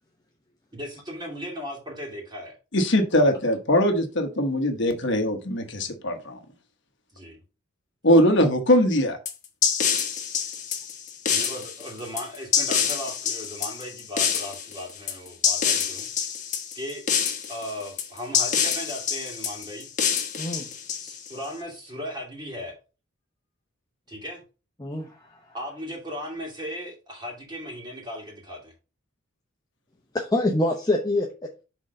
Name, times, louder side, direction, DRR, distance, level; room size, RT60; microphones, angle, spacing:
voice 1, 0.7-2.6 7.1-7.4 11.3-16.1 16.7-17.0 17.5-19.9 20.9-22.7 24.1-24.4 25.5-28.7, equal, 20° right, -1 dB, 2.4 m, -37 dB
voice 2, 2.7-6.4 8.0-9.2, equal, 55° left, 5 dB, 1.1 m, -21 dB
sound 1, 9.3-21.5, left 7 dB, 35° left, 1.1 m, -26 dB
voice 3, 20.4-20.7 24.8-25.4 30.1-31.6, left 1 dB, 20° left, 1 dB, 0.7 m, -26 dB
6.1 x 3.8 x 5.2 m, 0.33 s
head